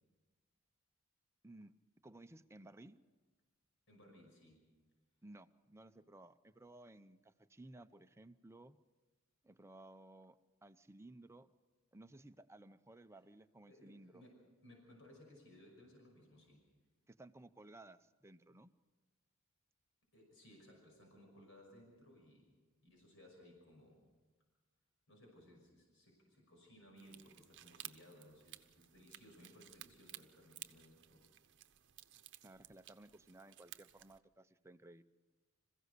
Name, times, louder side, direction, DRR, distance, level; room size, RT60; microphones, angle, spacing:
voice 1, 2.0-3.0 5.2-8.8 9.4-11.5 11.9-14.2 17.1-18.7 32.4-35.0, right 2 dB, 15° right, 9 dB, 0.6 m, -58 dB
voice 2, 3.9-4.8 13.6-16.7 20.1-22.6 22.8-24.1 25.1-31.3, left 1 dB, 65° left, 1 dB, 5.7 m, -61 dB
sound 1, 27.0-34.2, right 13 dB, 60° right, 0.8 m, -56 dB
27.0 x 15.5 x 6.7 m, 1.3 s
head